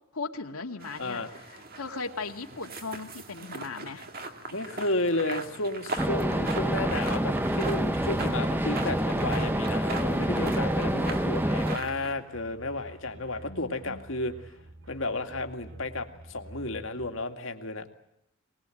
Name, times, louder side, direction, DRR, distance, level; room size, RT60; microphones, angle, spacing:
voice 1, 0.1-1.2 1.7-4.1 10.9-11.5 13.4-14.0, left 4 dB, 90° left, 3 dB, 2.2 m, -38 dB
sound 1, 0.8-12.1, right 3 dB, 45° right, 2.1 m, -40 dB
voice 2, 1.0-1.3 4.5-14.3 14.9-17.9, left 2 dB, 65° left, 6 dB, 2.2 m, -32 dB
sound 2, 6.0-11.8, right 1 dB, 10° right, 0.9 m, -27 dB
sound 3, 11.7-17.1, right 1 dB, 65° right, 3.0 m, -48 dB
24.0 x 19.5 x 9.2 m, 0.80 s
head